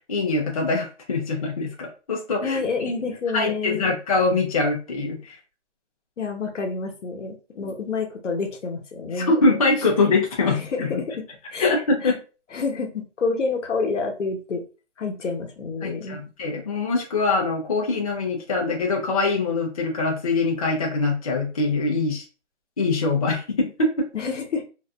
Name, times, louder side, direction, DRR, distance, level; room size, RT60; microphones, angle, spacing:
voice 1, 0.1-2.6 3.3-5.4 7.6-7.7 9.1-11.0 11.6-12.2 15.8-22.2 22.8-24.1, left 3 dB, 30° left, 0 dB, 0.4 m, -23 dB
voice 2, 2.4-3.9 6.2-9.3 10.4-11.7 12.0-12.1 12.5-14.6 15.0-16.2 24.1-24.6, left 4 dB, 85° left, 3 dB, 0.9 m, -28 dB
2.5 x 2.5 x 2.2 m, 0.34 s
hypercardioid pair, 155°, 36 cm